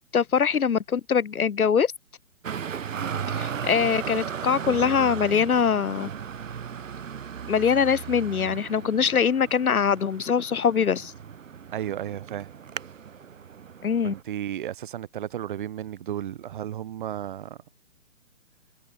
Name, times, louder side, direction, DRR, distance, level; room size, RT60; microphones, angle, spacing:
voice 1, 0.0-1.9 3.3-6.1 7.5-11.1 13.8-14.1, left 7 dB, 85° left, 1.5 m, -23 dB
Traffic noise roadway noise, 2.4-14.2, right 7 dB, 65° right, 1.7 m, -36 dB
voice 2, 11.7-12.5 14.0-17.6, right 11 dB, 35° right, 7.6 m, -33 dB
hypercardioid pair, 165°, 42 cm